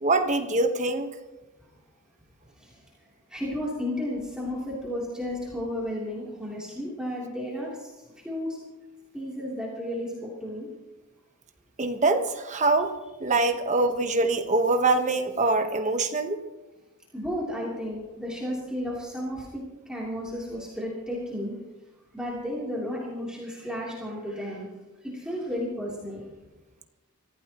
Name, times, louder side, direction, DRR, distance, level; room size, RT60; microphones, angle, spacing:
voice 1, 0.0-1.1 11.8-16.4, right 3 dB, 35° right, 6 dB, 1.3 m, -24 dB
voice 2, 3.3-7.9 8.2-8.6 9.1-10.7 17.1-19.5 19.9-21.6 22.1-24.7 25.1-26.2, equal, 5° right, -6 dB, 3.4 m, -33 dB
24.5 x 16.0 x 3.1 m, 1.1 s
head